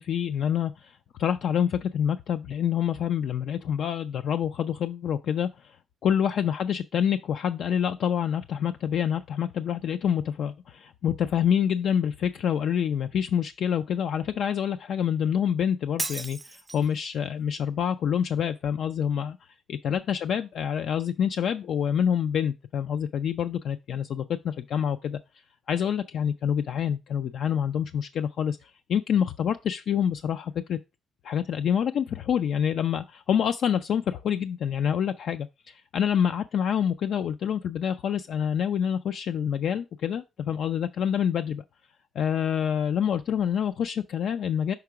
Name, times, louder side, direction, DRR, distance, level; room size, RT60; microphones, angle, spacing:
voice 1, 0.0-5.8 6.0-25.2 25.7-30.8 31.2-41.6 42.2-44.7, left 8 dB, 70° left, 0.3 m, -27 dB
Shatter, 16.0-17.0, right 2 dB, 15° right, 0.4 m, -34 dB
5.8 x 3.7 x 4.6 m
cardioid pair, 90°, 0 cm